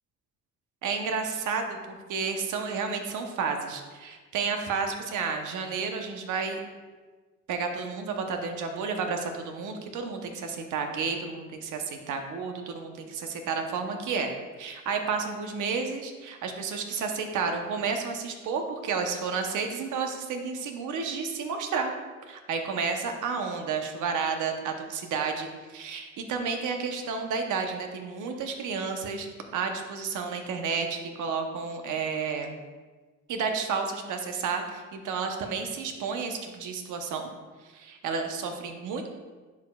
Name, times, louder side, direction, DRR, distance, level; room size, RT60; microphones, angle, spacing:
voice 1, 0.8-6.6 7.5-14.3 14.6-21.9 22.3-32.5 33.3-37.3 37.7-39.1, right 5 dB, 80° right, 4 dB, 0.9 m, -31 dB
10.5 x 4.9 x 2.3 m, 1.3 s
cardioid pair, 90°, 30 cm